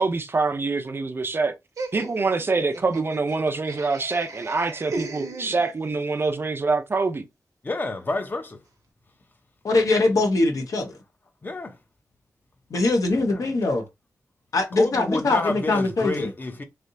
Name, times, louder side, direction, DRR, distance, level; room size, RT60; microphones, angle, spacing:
voice 1, 0.0-1.5 1.9-7.3, right 3 dB, 40° right, 0.5 m, -25 dB
Laughter, 1.8-6.0, right 3 dB, 70° right, 0.9 m, -37 dB
voice 2, 7.6-8.6 11.4-11.8 13.2-13.5 14.7-16.6, left 2 dB, 35° left, 0.7 m, -29 dB
voice 3, 9.6-10.9 12.7-13.9 14.5-16.3, left 2 dB, 65° left, 1.0 m, -22 dB
3.3 x 2.7 x 2.6 m
wide cardioid pair, 105°, 6 cm